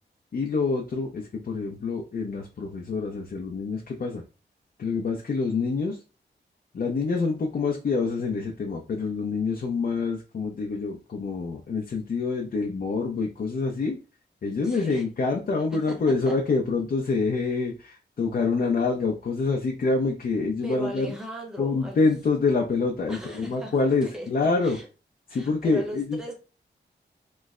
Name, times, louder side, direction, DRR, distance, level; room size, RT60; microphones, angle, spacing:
voice 1, 0.3-4.2 4.8-6.0 6.7-14.0 14.4-21.1 21.6-24.8 25.3-26.2, left 4 dB, 50° left, 0 dB, 0.5 m, -26 dB
voice 2, 14.6-15.0 15.7-16.0 16.3-16.4 20.6-22.1 23.1-24.9 25.3-26.3, equal, 5° right, 1 dB, 0.8 m, -38 dB
3.0 x 2.1 x 3.6 m, 0.34 s
wide cardioid pair, 130°, 19 cm